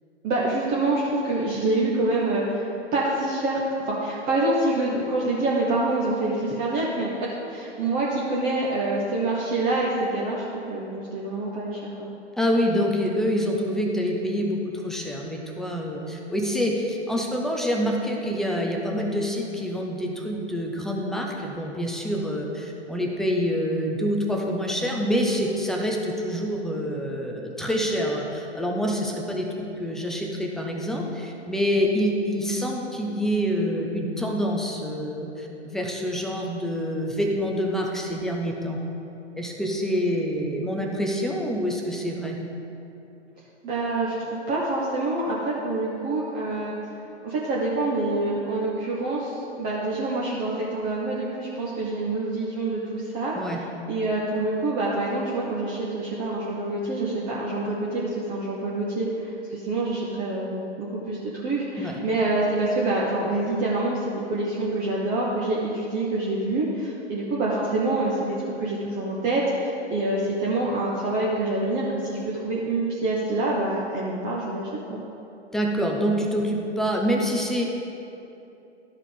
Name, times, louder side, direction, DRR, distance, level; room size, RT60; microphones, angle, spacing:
voice 1, 0.2-12.1 43.6-46.7 47.2-53.6 53.9-75.0, right 2 dB, 25° right, -5 dB, 1.1 m, -26 dB
voice 2, 12.4-38.8 39.3-42.4 53.4-53.6 61.8-62.0 75.5-77.6, equal, ahead, 0 dB, 0.4 m, -26 dB
12.0 x 4.8 x 5.2 m, 2.9 s
hypercardioid pair, 125°, 34 cm